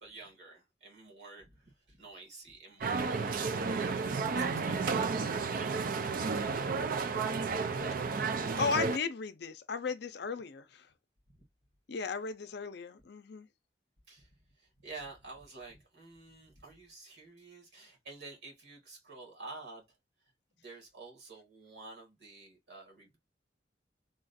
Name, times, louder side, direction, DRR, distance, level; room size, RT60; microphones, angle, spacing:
voice 1, 0.0-3.4 3.7-5.1 11.3-11.4 14.1-14.3 14.6-19.8 20.6-23.2, right 3 dB, 70° right, 2.0 m, -50 dB
sound 1, 2.8-9.0, right 4 dB, 50° right, 0.4 m, -32 dB
voice 2, 8.6-10.9 11.9-13.5, left 5 dB, 60° left, 0.5 m, -35 dB
3.7 x 2.4 x 2.6 m
head